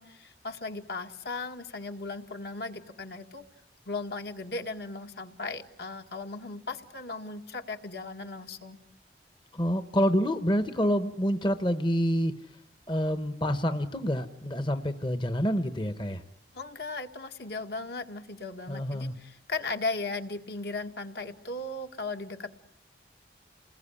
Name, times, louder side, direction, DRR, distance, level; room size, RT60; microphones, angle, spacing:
voice 1, 0.0-3.4 3.9-8.8 16.5-22.5, left 3 dB, 65° left, 5 dB, 1.8 m, -37 dB
voice 2, 9.5-12.3 12.9-16.2 18.7-19.1, equal, 25° left, 10 dB, 1.0 m, -27 dB
29.0 x 20.5 x 9.9 m, 0.73 s
head